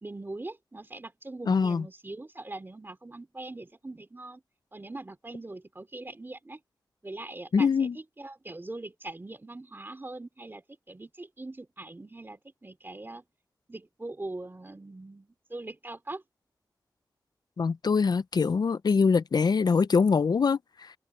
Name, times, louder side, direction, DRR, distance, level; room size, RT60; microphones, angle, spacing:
voice 1, 0.0-4.4 4.7-6.6 7.0-13.2 13.7-16.2, right 2 dB, 30° right, 2.7 m, -42 dB
voice 2, 1.5-1.8 7.5-8.0 17.6-20.9, left 5 dB, 70° left, 0.5 m, -24 dB
wide cardioid pair, 80°, 7 cm